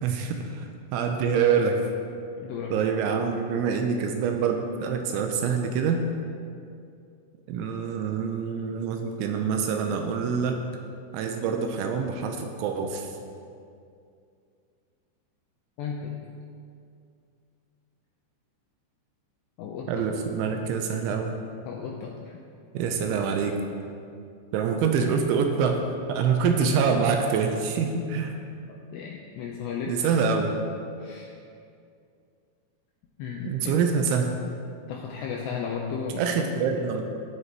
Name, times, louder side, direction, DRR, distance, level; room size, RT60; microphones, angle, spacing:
voice 1, 0.0-1.8 2.7-6.0 7.5-10.6 11.1-13.1 19.9-21.3 22.7-23.5 24.5-25.8 26.1-28.4 29.9-30.6 33.5-34.3 36.2-37.1, right 6 dB, 85° right, 4 dB, 2.9 m, -25 dB
voice 2, 2.4-2.8 15.8-16.2 19.6-20.1 21.7-22.4 28.9-30.1 31.0-31.3 33.2-33.8 34.9-36.3, left 6 dB, 90° left, -1 dB, 2.4 m, -34 dB
17.5 x 7.8 x 2.9 m, 2.4 s
omnidirectional pair, 5.7 m